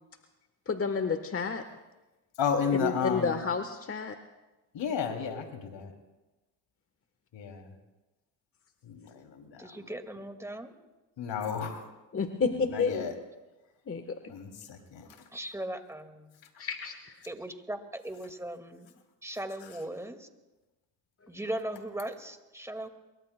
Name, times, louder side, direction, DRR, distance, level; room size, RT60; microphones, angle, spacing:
voice 1, 0.7-1.6 2.8-4.1 12.1-13.1 13.9-14.4 16.6-17.2, left 5 dB, 25° left, 7 dB, 1.2 m, -30 dB
voice 2, 2.4-3.4 4.7-5.9 7.3-7.7 8.8-9.7 11.2-11.8 12.7-13.1 14.3-15.1, left 6 dB, 60° left, 4 dB, 2.8 m, -32 dB
voice 3, 9.6-10.7 15.3-16.3 17.3-18.9 19.2-20.3 21.3-22.9, right 1 dB, 5° right, 6 dB, 1.9 m, -38 dB
27.5 x 23.0 x 2.2 m, 1.1 s
supercardioid pair, 70°, 49 cm